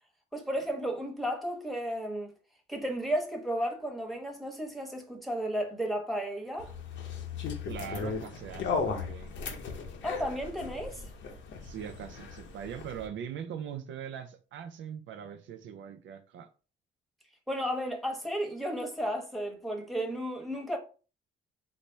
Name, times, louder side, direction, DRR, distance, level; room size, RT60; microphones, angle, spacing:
voice 1, 0.3-2.3 2.7-6.8 10.0-11.1 17.5-20.8, equal, ahead, 1.0 m, -33 dB
sound 1, 6.6-13.1, left 5 dB, 70° left, 0.7 m, -37 dB
voice 2, 7.7-9.3 11.6-16.5, right 8 dB, 70° right, 0.5 m, -41 dB
4.2 x 2.1 x 3.2 m
cardioid pair, 90°, 20 cm